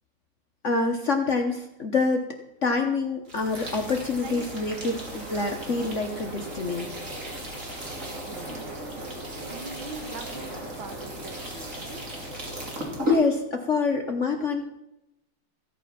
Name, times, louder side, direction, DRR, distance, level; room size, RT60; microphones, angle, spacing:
voice 1, 0.6-2.2 2.6-6.9 13.0-14.8, left 4 dB, 45° left, 4 dB, 1.1 m, -26 dB
sound 1, 3.3-13.2, equal, 35° right, 3.1 m, -35 dB
voice 2, 4.2-4.6 8.2-9.0 9.3-12.2, right 3 dB, 70° right, 5 dB, 2.3 m, -42 dB
15.5 x 8.3 x 5.8 m, 0.89 s
omnidirectional pair, 2.3 m